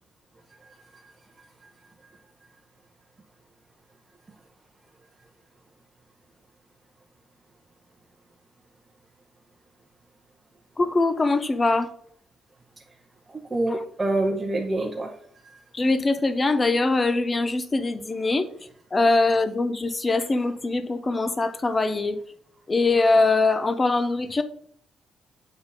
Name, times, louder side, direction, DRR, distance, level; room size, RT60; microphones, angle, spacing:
voice 1, 10.8-11.9 15.7-18.5 18.9-22.2 22.7-24.4, left 3 dB, 25° left, 0.7 m, -22 dB
voice 2, 13.3-15.2 15.4-15.6, right 2 dB, 25° right, 1.0 m, -27 dB
7.9 x 3.8 x 4.1 m
cardioid pair, 90°, 0 cm